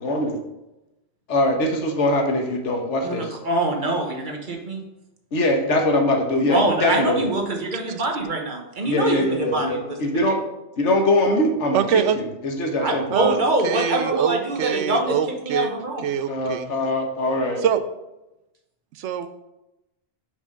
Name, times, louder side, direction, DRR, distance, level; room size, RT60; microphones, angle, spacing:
voice 1, 0.0-0.4 1.3-3.3 5.3-7.2 8.9-10.4 10.8-11.8 12.2-13.0 16.3-17.6, left 1 dB, 85° left, 3 dB, 1.4 m, -22 dB
voice 2, 3.0-4.8 6.5-10.3 12.8-15.2 15.4-16.0, right 2 dB, 45° right, 2 dB, 1.2 m, -24 dB
voice 3, 11.7-12.2 13.1-15.7 16.0-16.7 17.6-17.8 18.9-19.3, right 8 dB, 85° right, 11 dB, 0.9 m, -24 dB
5.5 x 5.0 x 5.3 m, 0.96 s
omnidirectional pair, 1.2 m